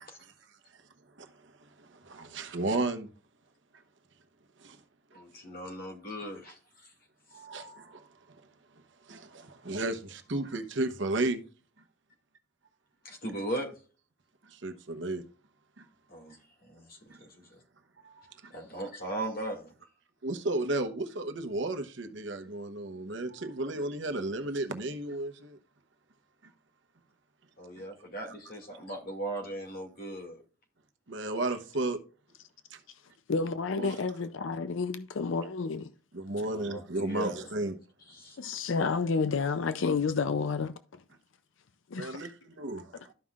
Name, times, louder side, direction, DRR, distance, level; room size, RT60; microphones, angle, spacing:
voice 1, 1.8-3.1 4.6-4.8 5.1-5.2 7.3-8.4 9.1-11.4 14.4-15.2 15.8-15.9 17.1-17.2 18.0-18.5 20.2-25.6 31.1-32.0 32.7-32.8 33.8-33.9 36.1-37.7 38.4-38.5 42.0-42.9, right 2 dB, 60° right, 1.0 m, -34 dB
voice 2, 5.1-6.9 13.0-13.7 16.1-16.4 16.7-17.3 18.5-19.7 27.6-30.4 36.5-37.4 38.1-38.4, right 1 dB, 45° left, 2.2 m, -38 dB
voice 3, 33.3-35.9 38.4-40.7 41.9-42.2, left 4 dB, 65° left, 0.5 m, -30 dB
13.5 x 5.6 x 2.4 m
head